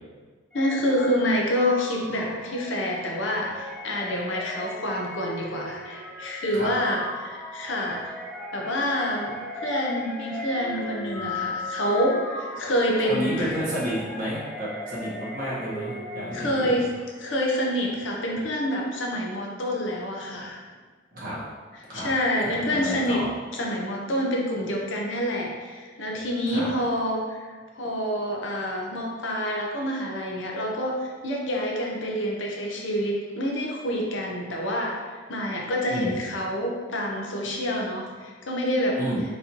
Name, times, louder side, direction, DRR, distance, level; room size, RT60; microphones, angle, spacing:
voice 1, 0.5-8.2 8.5-13.5 16.3-16.9 17.2-20.6 21.9-23.2 23.5-39.0, equal, 75° left, -1 dB, 0.8 m, -27 dB
sound 1, 0.5-16.7, left 2 dB, 5° left, 0.4 m, -37 dB
voice 2, 13.0-16.8 21.1-21.4 21.9-22.1 22.4-23.3 26.5-26.7 35.9-36.1 39.0-39.2, equal, 45° right, -8 dB, 1.4 m, -31 dB
4.0 x 4.0 x 2.9 m, 1.5 s
head